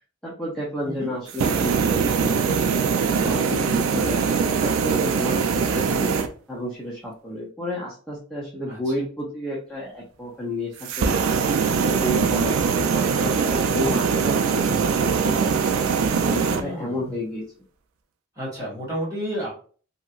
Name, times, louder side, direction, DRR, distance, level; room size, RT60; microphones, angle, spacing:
voice 1, 0.2-2.6 3.0-6.1 6.5-11.5 11.9-15.6 16.2-17.4, left 1 dB, ahead, -7 dB, 0.5 m, -31 dB
sound 1, 1.3-6.3 10.8-16.6, right 5 dB, 75° right, 0.4 m, -22 dB
voice 2, 16.4-17.1 18.3-19.5, equal, 15° right, -7 dB, 1.5 m, -32 dB
3.0 x 2.8 x 2.4 m, 0.42 s
head